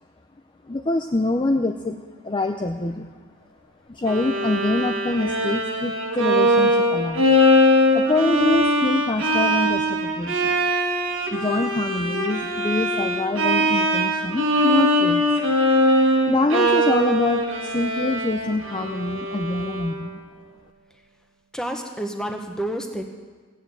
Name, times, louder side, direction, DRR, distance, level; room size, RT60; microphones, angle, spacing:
voice 1, 0.7-2.0 2.2-3.1 3.9-7.3 7.9-10.5 11.3-15.3 16.3-20.2, left 2 dB, 20° left, 4 dB, 0.5 m, -25 dB
Bowed string instrument, 4.1-20.1, equal, 60° right, 1.7 m, -21 dB
voice 2, 21.5-23.0, right 1 dB, 5° left, 4 dB, 1.1 m, -29 dB
15.5 x 9.1 x 8.0 m, 1.5 s
head